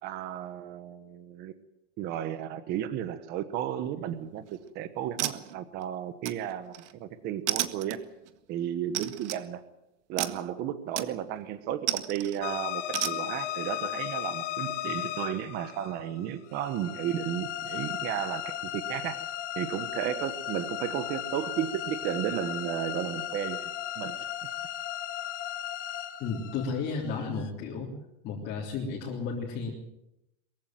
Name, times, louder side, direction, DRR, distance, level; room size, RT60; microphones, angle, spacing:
voice 1, 0.0-1.5 2.0-4.5 4.7-6.7 7.0-8.0 8.5-9.6 10.1-19.2 19.5-23.7 24.0-24.3, right 10 dB, 25° right, 12 dB, 1.1 m, -33 dB
sound 1, 4.4-4.7 5.2-5.8 6.3-6.9 7.5-8.3 8.9-9.4 10.2-10.5 11.0-11.4 11.9-12.4 12.9-13.2, right 13 dB, 70° right, 1.7 m, -33 dB
sound 2, 12.4-27.5, left 12 dB, 75° left, 2.6 m, -36 dB
voice 2, 26.2-27.9 28.2-29.7, left 4 dB, 25° left, -3 dB, 3.4 m, -33 dB
22.5 x 15.5 x 9.2 m, 0.87 s
supercardioid pair, 175°, 37 cm